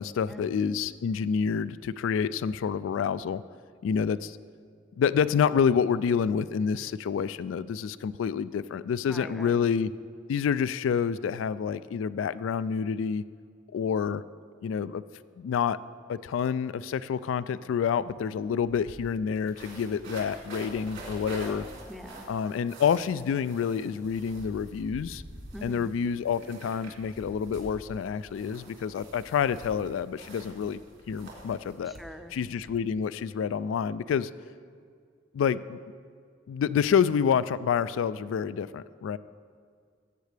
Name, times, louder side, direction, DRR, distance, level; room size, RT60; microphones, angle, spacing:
voice 1, 0.0-3.4 3.8-4.4 5.0-9.9 10.3-13.2 13.7-14.2 14.6-15.0 15.4-15.8 16.1-21.7 22.3-25.2 25.6-30.8 31.1-31.9 32.3-34.3 35.3-35.8 36.5-39.2, left 7 dB, 75° left, 17 dB, 0.3 m, -28 dB
voice 2, 9.1-9.7 21.9-22.3 25.5-25.9 31.8-32.3, equal, ahead, 7 dB, 0.5 m, -43 dB
sound 1, 18.0-18.1 18.3-32.8, right 1 dB, 65° right, 2.7 m, -46 dB
16.5 x 8.1 x 3.3 m, 2.1 s
head